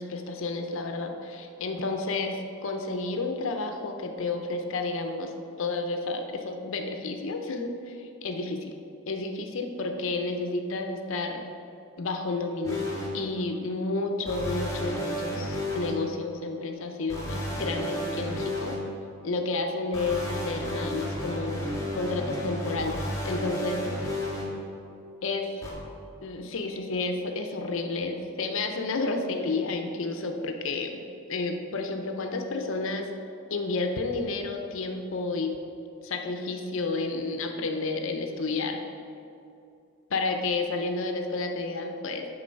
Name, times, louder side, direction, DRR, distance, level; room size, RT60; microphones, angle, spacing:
voice 1, 0.0-5.3 5.6-8.7 9.1-11.5 12.0-12.8 13.1-18.8 19.2-23.8 25.2-25.6 26.2-31.0 31.3-33.1 33.5-35.5 36.0-38.8 40.1-42.3, left 3 dB, 60° left, 4 dB, 0.5 m, -31 dB
sound 1, 12.6-13.1 14.3-15.9 17.1-18.7 19.9-24.4 25.6-25.7, equal, 15° left, 1.5 m, -32 dB
8.8 x 3.8 x 5.2 m, 2.6 s
head